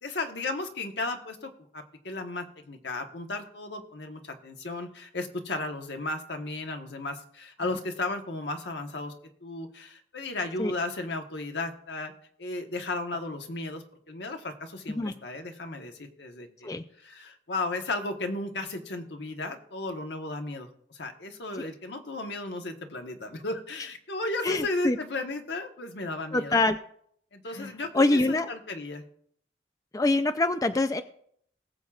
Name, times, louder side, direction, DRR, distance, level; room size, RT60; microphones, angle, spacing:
voice 1, 0.0-9.1 9.4-12.1 12.4-16.7 17.0-26.6 27.3-27.9 28.3-29.0, left 2 dB, 80° left, 4 dB, 1.2 m, -35 dB
voice 2, 24.4-25.0 26.3-26.8 27.5-28.5 29.9-31.0, left 2 dB, 20° left, 9 dB, 0.4 m, -25 dB
20.0 x 7.2 x 2.4 m, 0.65 s
head